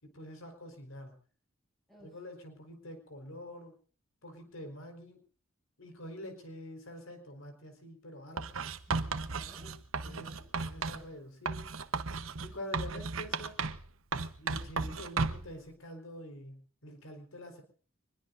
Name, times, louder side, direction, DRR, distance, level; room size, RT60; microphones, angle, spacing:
voice 1, 0.0-1.1 2.0-3.8 4.2-5.2 5.8-8.7 10.0-11.7 12.4-13.6 14.4-17.6, left 1 dB, 75° left, 6 dB, 4.6 m, -46 dB
Writing, 8.4-11.1 11.5-13.9 14.1-15.5, right 4 dB, 70° right, 1.1 m, -35 dB
voice 2, 8.9-10.5, equal, ahead, -5 dB, 7.4 m, -57 dB
25.0 x 21.5 x 2.6 m, 0.41 s
head